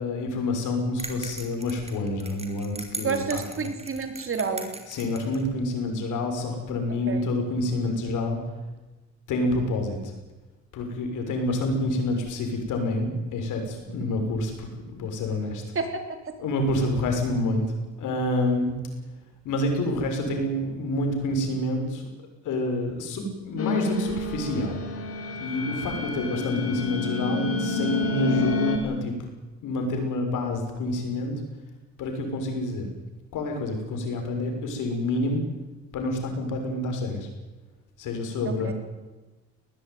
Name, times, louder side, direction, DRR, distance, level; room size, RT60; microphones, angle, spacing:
voice 1, 0.0-3.7 4.9-8.4 9.3-10.1 10.7-15.6 16.4-17.7 18.0-18.7 19.4-22.1 22.4-24.8 25.4-29.1 29.6-31.4 32.0-32.9 33.3-35.4 35.9-37.3 38.0-38.7, left 1 dB, 85° left, 4 dB, 6.6 m, -28 dB
sound 1, 1.0-5.4, right 2 dB, 20° right, 5.0 m, -39 dB
voice 2, 3.0-4.7 7.1-7.3 15.7-16.2 38.5-38.7, right 5 dB, 45° right, 6 dB, 4.1 m, -29 dB
sound 2, 23.6-28.8, left 3 dB, 50° left, 5.1 m, -28 dB
21.0 x 19.0 x 9.5 m, 1.2 s
cardioid pair, 90°, 30 cm